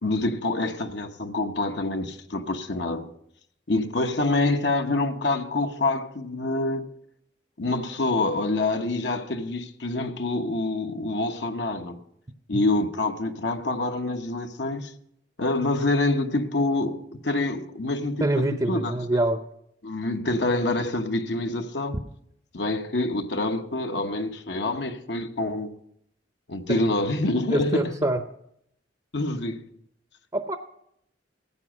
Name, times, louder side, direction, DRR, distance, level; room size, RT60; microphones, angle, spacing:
voice 1, 0.0-3.1 3.7-6.8 7.6-12.0 12.5-14.9 15.4-18.9 19.8-22.0 22.5-25.7 26.5-27.9 29.1-29.7, left 2 dB, 70° left, 1.1 m, -26 dB
voice 2, 18.2-19.4 26.7-26.8 27.5-28.2 30.3-30.6, right 1 dB, 25° right, 0.7 m, -25 dB
15.5 x 9.0 x 6.1 m
head